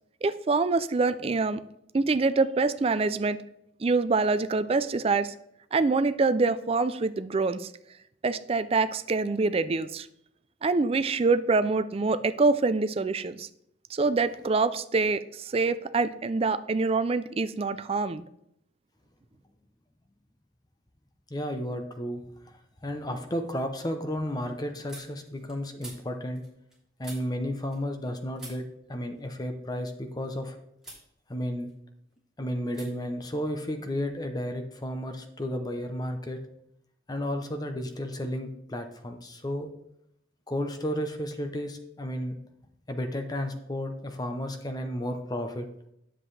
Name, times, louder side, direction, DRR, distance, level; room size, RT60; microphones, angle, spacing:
voice 1, 0.2-1.6 1.9-3.4 3.8-5.3 5.7-7.7 8.2-10.1 10.6-13.5 13.9-18.2, right 3 dB, 30° right, 13 dB, 0.4 m, -25 dB
voice 2, 21.3-26.4 27.0-30.6 31.3-31.7 32.4-36.4 37.1-39.7 40.5-42.4 42.9-45.7, equal, 20° left, 6 dB, 0.7 m, -33 dB
sound 1, 22.1-22.7 23.0-28.1 28.3-30.4 30.8-31.1 31.4-32.2 32.7-32.9 33.1-34.2, right 2 dB, 5° right, 3.1 m, -51 dB
10.0 x 7.5 x 3.3 m, 0.77 s
head